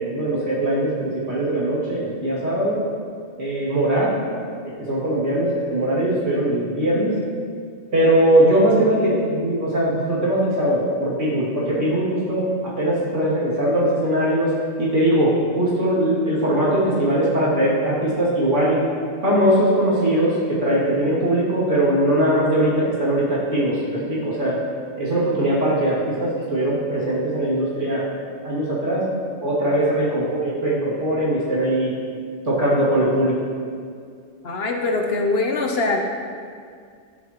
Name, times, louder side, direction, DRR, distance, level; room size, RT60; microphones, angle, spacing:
voice 1, 0.0-2.8 3.4-4.1 4.6-7.1 7.9-14.5 14.8-18.8 19.2-24.6 25.0-28.1 28.4-29.0 29.4-31.9 32.5-33.4, right 1 dB, 75° right, -8 dB, 2.7 m, -20 dB
voice 2, 34.4-36.0, left 3 dB, 60° left, 3 dB, 1.0 m, -22 dB
12.5 x 7.3 x 3.0 m, 2.2 s
omnidirectional pair, 1.3 m